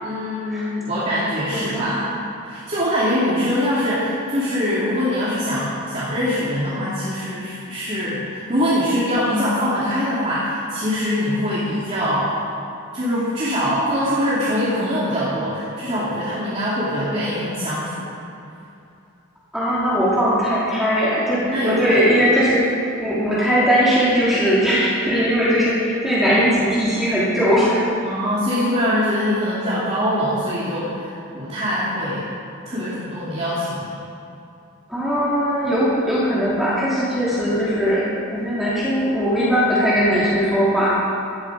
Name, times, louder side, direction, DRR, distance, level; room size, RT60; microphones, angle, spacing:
voice 1, 0.0-2.1 2.4-12.4 12.9-18.1 21.5-22.0 28.0-32.2 32.7-33.9, equal, 30° right, -9 dB, 2.8 m, -23 dB
voice 2, 1.5-1.9 19.5-22.7 23.0-27.8 34.9-40.9, equal, ahead, -10 dB, 2.9 m, -19 dB
16.0 x 12.5 x 4.9 m, 2.6 s
head